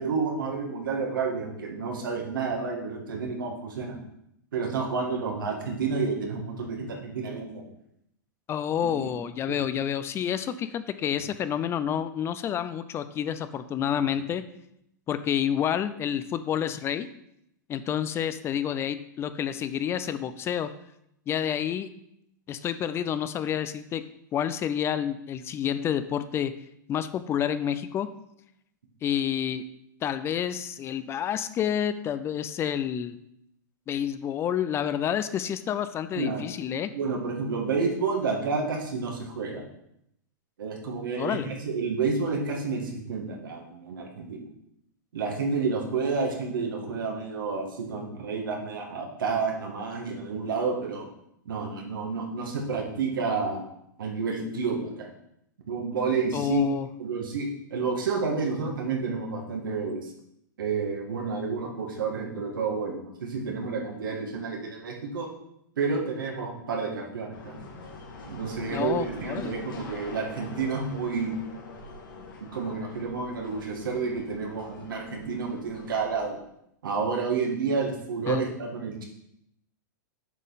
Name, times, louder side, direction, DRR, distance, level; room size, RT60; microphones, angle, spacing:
voice 1, 0.0-4.0 4.5-7.6 8.8-9.1 9.5-9.6 36.2-36.4 36.9-39.6 40.6-44.4 45.1-51.1 51.5-53.6 54.0-55.1 55.7-56.6 57.0-60.1 60.6-65.3 65.8-67.7 68.3-71.4 72.4-76.4 76.8-79.0, right 4 dB, 85° right, 0 dB, 2.0 m, -30 dB
voice 2, 8.5-14.4 15.1-17.1 17.7-20.7 21.3-21.9 22.5-24.0 24.3-26.5 26.9-28.1 29.0-29.6 30.0-33.2 33.9-36.9 41.2-41.5 56.3-56.9 68.7-69.5 78.3-78.4, left 9 dB, 25° left, 12 dB, 0.4 m, -29 dB
sound 1, 67.3-76.3, left 3 dB, 85° left, 2.1 m, -44 dB
7.4 x 5.5 x 4.1 m, 0.76 s
hypercardioid pair, 130°, 11 cm